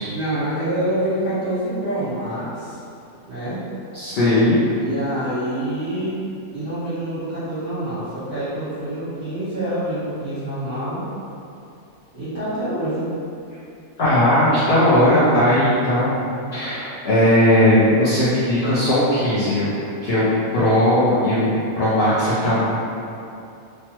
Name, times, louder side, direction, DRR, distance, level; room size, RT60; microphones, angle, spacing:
voice 1, 0.0-2.8 3.3-3.6 4.8-6.2 6.5-11.0 12.1-13.1, right 1 dB, 40° right, -16 dB, 1.3 m, -26 dB
voice 2, 3.9-4.6 14.0-16.2 16.5-19.7 20.0-20.3 20.5-22.6, left 1 dB, 60° left, -11 dB, 0.7 m, -18 dB
3.1 x 2.1 x 2.9 m, 2.6 s
omnidirectional pair, 1.6 m